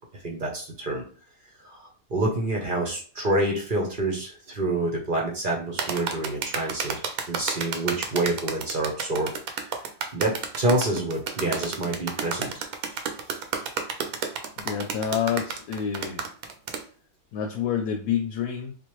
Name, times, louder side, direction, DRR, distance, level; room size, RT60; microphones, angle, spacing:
voice 1, 0.2-1.0 1.7-7.0 7.3-9.3 9.7-9.8 10.1-13.0, right 2 dB, 45° right, 0 dB, 0.8 m, -27 dB
sound 1, 5.8-16.8, right 6 dB, 70° right, 1.0 m, -31 dB
voice 2, 14.6-16.2 17.3-18.8, left 8 dB, 75° left, 4 dB, 1.0 m, -28 dB
3.8 x 2.5 x 3.0 m, 0.40 s
omnidirectional pair, 1.7 m